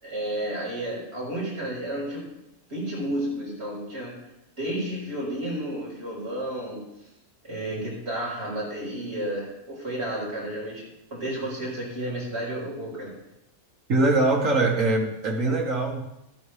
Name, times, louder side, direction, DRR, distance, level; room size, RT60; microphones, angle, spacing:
voice 1, 0.0-2.3 2.7-4.1 4.6-6.8 7.5-13.1, right 1 dB, 50° right, -6 dB, 5.6 m, -32 dB
voice 2, 13.9-16.1, right 2 dB, 70° right, 1 dB, 2.1 m, -22 dB
14.0 x 13.0 x 3.4 m, 0.88 s
omnidirectional pair, 1.5 m